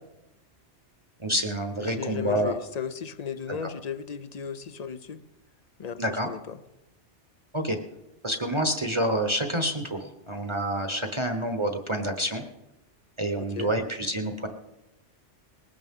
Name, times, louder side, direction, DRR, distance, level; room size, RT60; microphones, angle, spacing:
voice 1, 1.2-2.5 6.0-6.3 7.5-7.8 8.2-12.4 13.2-14.5, right 1 dB, 25° right, 4 dB, 1.0 m, -28 dB
voice 2, 1.8-5.2 5.8-6.6 13.4-13.7, left 7 dB, 45° left, 13 dB, 0.6 m, -35 dB
20.0 x 17.0 x 3.7 m, 0.99 s
omnidirectional pair, 1.2 m